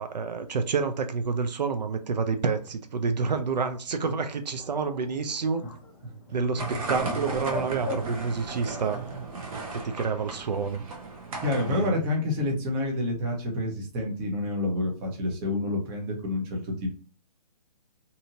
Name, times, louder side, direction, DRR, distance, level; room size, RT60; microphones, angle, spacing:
voice 1, 0.0-5.7 6.3-9.0 9.7-10.8 11.7-12.0, right 5 dB, 80° right, 0.5 m, -28 dB
Bird, 3.8-9.4, left 4 dB, 35° left, 0.9 m, -42 dB
sound 1, 6.6-11.9, right 3 dB, 55° right, 0.9 m, -35 dB
voice 2, 11.4-16.9, left 2 dB, 20° right, 0.7 m, -28 dB
2.7 x 2.6 x 2.7 m
hypercardioid pair, 145°, 21 cm